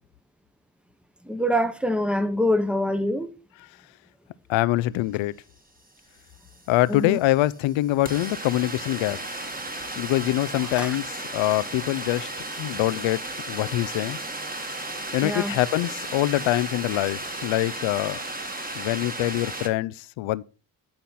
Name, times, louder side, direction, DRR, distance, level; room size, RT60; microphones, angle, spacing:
voice 1, 1.3-3.3 6.9-7.2 10.8-10.9 15.2-15.5, equal, ahead, 1.0 m, -24 dB
voice 2, 4.5-5.3 6.7-9.2 10.0-12.3 12.6-13.2 13.5-14.2 15.1-18.2 18.7-20.4, left 16 dB, 80° left, 0.6 m, -24 dB
sound 1, 6.0-6.1 6.3-19.7, right 2 dB, 20° right, 1.7 m, -35 dB
10.5 x 3.9 x 5.7 m
cardioid pair, 70°, 46 cm